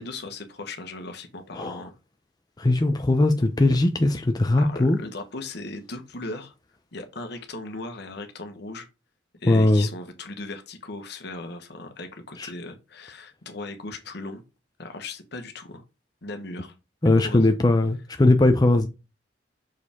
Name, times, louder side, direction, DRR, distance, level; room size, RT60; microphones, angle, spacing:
voice 1, 0.0-2.0 4.6-6.5 6.9-8.9 9.4-14.4 14.8-15.8 16.2-16.7 17.0-17.5, left 2 dB, 65° left, 1.3 m, -37 dB
voice 2, 2.6-5.0 9.5-9.9 12.4-12.5 17.0-18.9, left 2 dB, 20° left, 0.6 m, -20 dB
6.4 x 4.9 x 3.6 m
head